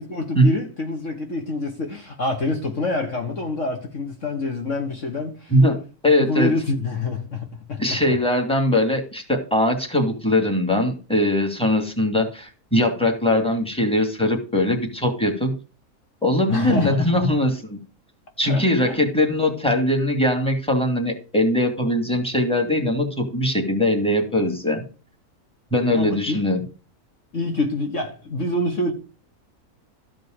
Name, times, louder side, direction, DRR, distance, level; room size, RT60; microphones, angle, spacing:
voice 1, 0.0-5.5 6.2-8.0 16.5-17.1 18.4-19.0 25.9-26.5 27.3-28.9, left 2 dB, 55° left, 1.8 m, -26 dB
voice 2, 5.5-6.5 7.8-15.5 16.2-17.8 18.4-24.8 25.7-26.6, left 1 dB, 5° left, 2.4 m, -21 dB
13.5 x 5.3 x 6.6 m
omnidirectional pair, 1.6 m